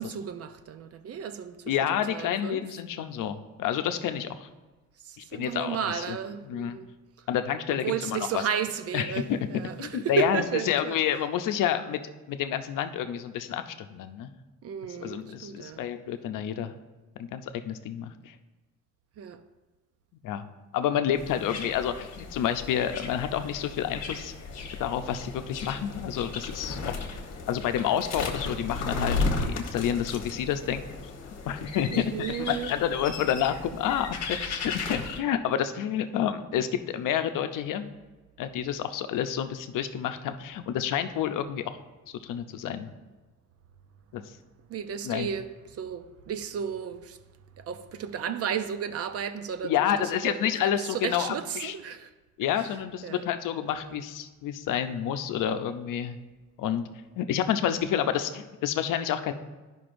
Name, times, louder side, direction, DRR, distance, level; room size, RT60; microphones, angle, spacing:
voice 1, 0.0-1.7 2.1-2.6 5.0-6.9 7.8-11.0 14.6-15.9 19.2-19.4 31.9-32.7 44.7-47.2 47.6-52.1 52.6-52.8 53.0-53.3 53.7-54.0, right 7 dB, 50° right, 0.5 m, -33 dB
voice 2, 1.7-4.5 5.2-6.2 6.4-6.8 7.3-8.4 8.9-9.5 9.8-12.0 12.3-14.3 15.0-16.7 17.2-18.3 20.2-20.4 20.7-24.3 24.8-27.0 27.5-30.8 31.5-31.9 32.4-37.9 38.4-41.8 42.1-42.9 44.1-44.2 45.0-45.3 49.6-51.7 52.4-56.2 56.6-56.8 57.2-59.3, left 9 dB, 85° left, 0.6 m, -29 dB
sound 1, 21.2-35.2, left 3 dB, 55° left, 1.1 m, -35 dB
12.5 x 5.4 x 2.6 m
cardioid pair, 140°, 31 cm